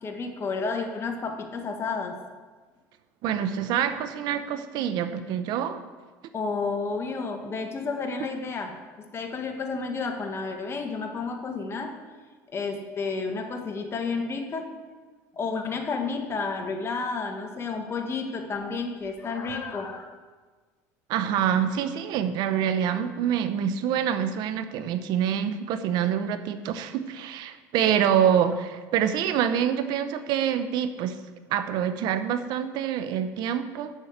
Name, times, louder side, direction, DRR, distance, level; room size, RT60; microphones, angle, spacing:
voice 1, 0.0-2.2 6.3-11.9 12.5-14.7 15.3-20.0, left 4 dB, 35° left, 4 dB, 1.5 m, -31 dB
voice 2, 3.2-5.8 21.1-31.1 31.5-33.9, right 9 dB, 65° right, 11 dB, 0.8 m, -26 dB
7.4 x 6.5 x 7.9 m, 1.4 s
supercardioid pair, 100°, 8 cm